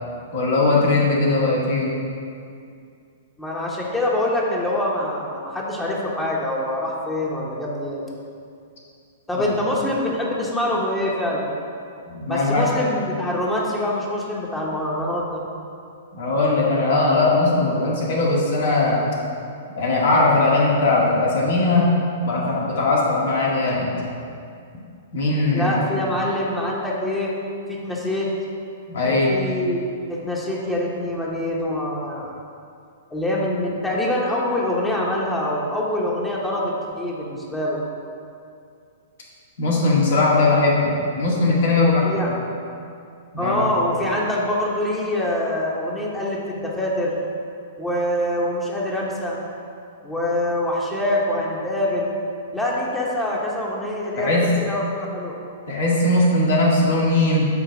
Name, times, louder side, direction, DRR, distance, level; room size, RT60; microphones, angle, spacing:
voice 1, 0.3-1.9 9.4-9.5 12.1-12.7 16.1-19.0 19.8-23.9 25.1-25.7 28.9-29.4 39.6-42.1 43.3-43.7 54.2-54.6 55.7-57.5, left 2 dB, 60° left, -4 dB, 1.8 m, -19 dB
voice 2, 3.4-8.0 9.3-11.5 12.3-15.4 25.5-27.3 27.7-28.3 29.0-29.8 30.1-32.3 33.1-37.8 41.8-42.3 43.4-47.1 47.8-49.4 50.0-52.1 52.5-55.3, left 1 dB, 10° left, -4 dB, 1.1 m, -25 dB
7.9 x 3.3 x 6.2 m, 2.4 s
figure-of-eight pair, 110°, 0 cm